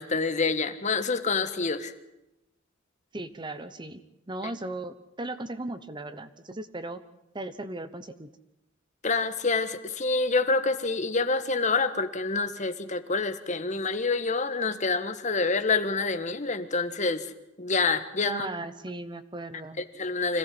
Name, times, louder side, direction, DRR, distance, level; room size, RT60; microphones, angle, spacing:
voice 1, 0.0-1.9 9.0-17.2 17.6-18.5 20.0-20.4, left 4 dB, 35° left, 10 dB, 1.5 m, -27 dB
voice 2, 3.1-4.0 4.3-7.0 7.3-8.3 18.2-19.8, right 2 dB, 25° right, 12 dB, 1.0 m, -37 dB
26.0 x 16.5 x 7.8 m, 0.88 s
head